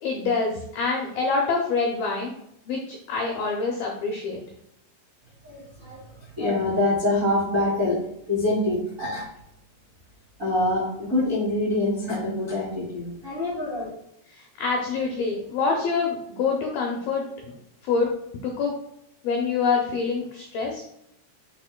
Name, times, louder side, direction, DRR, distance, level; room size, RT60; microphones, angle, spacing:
voice 1, 0.0-2.3 2.7-4.4 14.3-17.2 17.8-18.1 18.4-18.7 19.2-20.8, left 4 dB, 85° left, 0 dB, 2.1 m, -26 dB
voice 2, 5.4-6.0 6.4-8.0 8.3-9.2 10.4-13.9, left 2 dB, 40° right, -7 dB, 1.0 m, -25 dB
10.5 x 4.8 x 2.2 m, 0.77 s
omnidirectional pair, 5.6 m